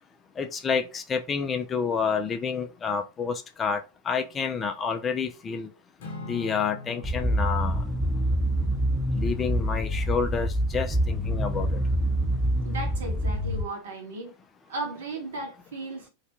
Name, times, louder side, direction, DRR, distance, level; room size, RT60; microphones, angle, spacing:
voice 1, 0.4-5.7 6.3-7.8 9.1-11.8, left 6 dB, 20° left, 0.3 m, -29 dB
Acoustic guitar / Strum, 6.0-10.5, left 3 dB, 55° left, 0.6 m, -44 dB
sound 1, 7.0-13.6, equal, 15° right, 0.8 m, -26 dB
voice 2, 12.6-14.3 14.7-16.1, right 2 dB, 60° right, 0.9 m, -35 dB
2.3 x 2.2 x 2.8 m
figure-of-eight pair, 90°, 0 cm